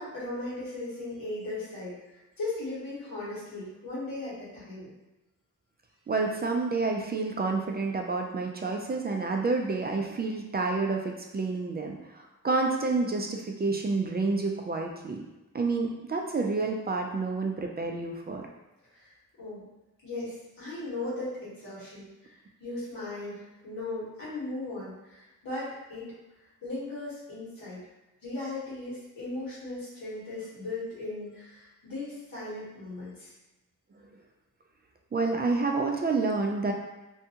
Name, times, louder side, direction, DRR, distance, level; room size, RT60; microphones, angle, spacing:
voice 1, 0.0-4.9 18.9-19.6 20.0-26.1 26.6-27.8 28.2-33.3, left 2 dB, 85° left, -9 dB, 1.3 m, -37 dB
voice 2, 6.1-15.2 15.5-18.5 35.1-36.7, right 3 dB, 30° right, 2 dB, 0.3 m, -29 dB
2.6 x 2.2 x 2.8 m, 1.0 s
cardioid pair, 70°, 33 cm